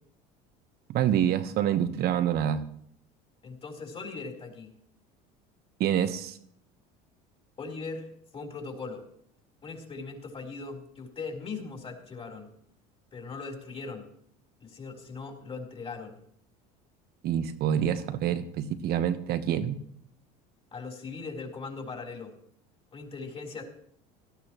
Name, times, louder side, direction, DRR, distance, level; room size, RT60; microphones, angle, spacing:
voice 1, 0.9-2.6 5.8-6.4 17.2-19.8, right 9 dB, 55° right, 11 dB, 1.2 m, -27 dB
voice 2, 3.4-4.7 7.6-8.1 8.3-9.0 9.6-12.5 13.1-14.1 14.6-16.2 20.7-22.3 22.9-23.6, left 4 dB, 30° left, 0 dB, 3.9 m, -39 dB
17.5 x 13.0 x 3.1 m, 0.67 s
supercardioid pair, 100°, 20 cm